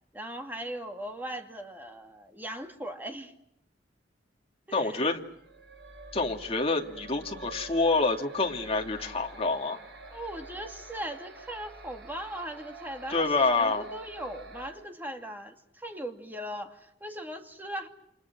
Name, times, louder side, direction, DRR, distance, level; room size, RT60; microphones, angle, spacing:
voice 1, 0.1-3.3 4.7-5.1 10.1-17.9, right 1 dB, 10° right, 2.4 m, -39 dB
voice 2, 4.7-5.2 6.1-9.8 13.1-13.8, left 3 dB, 35° left, 2.7 m, -27 dB
sound 1, 5.2-14.7, right 3 dB, 65° right, 6.3 m, -47 dB
29.0 x 26.5 x 6.1 m
head